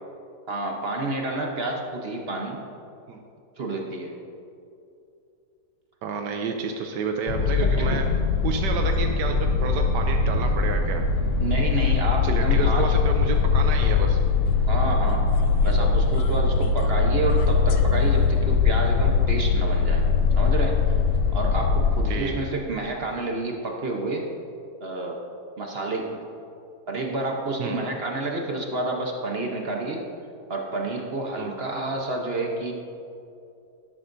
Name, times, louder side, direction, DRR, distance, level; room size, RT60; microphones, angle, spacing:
voice 1, 0.5-2.6 3.6-4.1 7.6-8.0 11.4-12.9 14.7-15.3 15.6-20.0 20.4-20.9 21.3-24.3 24.8-25.2 25.6-26.2 26.9-30.0 30.5-32.7, right 2 dB, 45° right, 1 dB, 0.9 m, -29 dB
voice 2, 6.0-8.0 8.4-11.0 12.2-14.2 22.1-22.3 27.6-27.8 31.4-31.5, right 5 dB, 80° right, 3 dB, 1.2 m, -30 dB
sound 1, 7.3-22.1, left 5 dB, 85° left, 1.3 m, -21 dB
12.0 x 11.0 x 2.6 m, 2.6 s
omnidirectional pair, 1.9 m